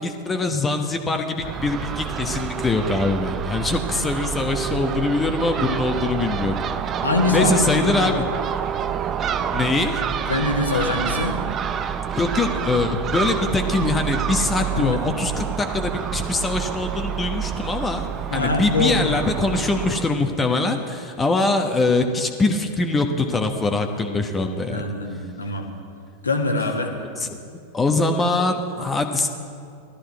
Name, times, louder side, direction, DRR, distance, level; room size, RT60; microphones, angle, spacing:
voice 1, 0.0-6.6 7.3-8.3 9.5-10.0 12.1-18.1 18.3-24.9 27.2-27.4 27.7-29.3, left 3 dB, 15° left, 5 dB, 1.0 m, -23 dB
Crow / Gull seagull, 1.4-20.0, right 8 dB, 25° right, 0.6 m, -28 dB
voice 2, 7.0-8.2 10.3-11.4 14.7-15.0 18.3-19.4 24.7-25.7 26.2-26.9, left 2 dB, 75° left, 3 dB, 1.6 m, -23 dB
17.0 x 13.0 x 4.7 m, 2.4 s
figure-of-eight pair, 90°, 0 cm